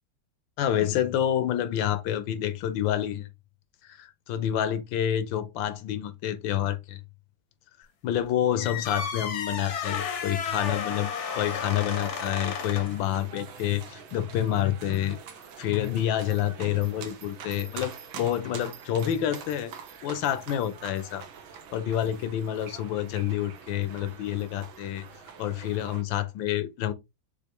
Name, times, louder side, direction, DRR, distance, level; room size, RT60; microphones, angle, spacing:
voice 1, 0.6-3.3 3.8-7.0 8.0-15.2 15.6-19.7 20.0-21.2 21.7-25.0 25.4-26.9, left 11 dB, 75° left, 1.3 m, -28 dB
sound 1, 8.6-13.0, left 6 dB, 55° left, 0.8 m, -33 dB
sound 2, 11.1-26.0, right 7 dB, 90° right, 1.7 m, -45 dB
6.3 x 2.7 x 2.9 m
omnidirectional pair, 2.1 m